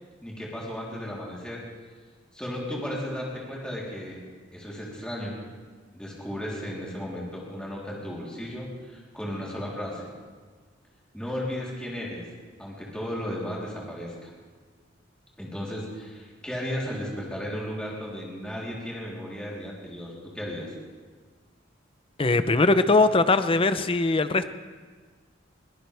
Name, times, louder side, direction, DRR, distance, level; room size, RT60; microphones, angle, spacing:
voice 1, 0.2-1.6 2.3-4.2 4.5-5.4 5.9-10.1 11.1-12.3 12.6-14.3 15.4-20.7, equal, 5° left, -5 dB, 3.6 m, -35 dB
voice 2, 22.2-24.5, left 3 dB, 30° left, 11 dB, 0.6 m, -21 dB
22.0 x 17.5 x 3.5 m, 1.5 s
head